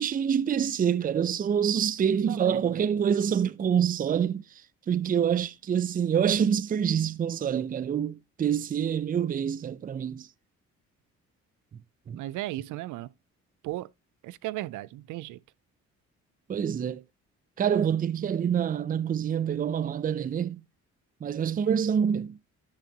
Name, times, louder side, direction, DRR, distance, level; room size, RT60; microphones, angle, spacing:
voice 1, 0.0-4.4 4.9-10.3 12.1-12.2 16.5-17.0 17.6-20.6 21.2-22.4, right 8 dB, 30° right, 0.4 m, -26 dB
voice 2, 2.3-2.8 12.1-13.1 13.6-13.9 14.2-15.4, right 16 dB, 85° right, 0.5 m, -36 dB
11.0 x 6.6 x 2.9 m
cardioid pair, 90°, 30 cm